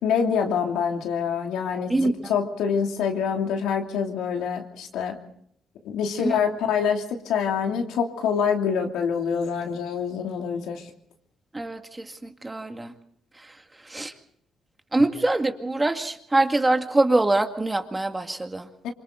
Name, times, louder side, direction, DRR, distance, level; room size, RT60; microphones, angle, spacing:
voice 1, 0.0-5.2 5.8-10.8 18.8-18.9, left 7 dB, 90° left, 3 dB, 2.9 m, -26 dB
voice 2, 11.5-12.1 12.4-12.9 13.9-14.1 14.9-18.6, right 2 dB, 15° right, 5 dB, 2.1 m, -23 dB
27.0 x 24.5 x 3.9 m, 0.68 s
cardioid pair, 90°, 0 cm